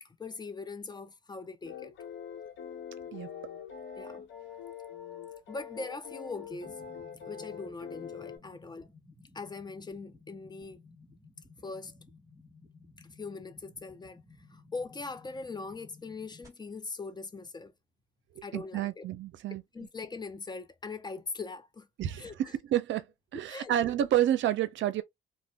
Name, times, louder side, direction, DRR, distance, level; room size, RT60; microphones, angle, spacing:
voice 1, 0.0-1.9 4.0-4.2 5.5-6.8 7.3-8.9 9.3-10.8 11.6-11.9 13.2-14.2 14.5-17.7 18.4-19.0 19.5-21.9 22.2-22.5 23.3-23.8, left 4 dB, 20° left, 0.5 m, -41 dB
sound 1, 1.6-8.4, left 8 dB, 70° left, 0.9 m, -44 dB
sound 2, 6.5-16.5, left 3 dB, 15° right, 1.3 m, -56 dB
voice 2, 18.3-19.6 22.0-23.0 23.3-25.0, right 11 dB, 70° right, 0.6 m, -29 dB
2.5 x 2.1 x 3.3 m
cardioid pair, 90°, 20 cm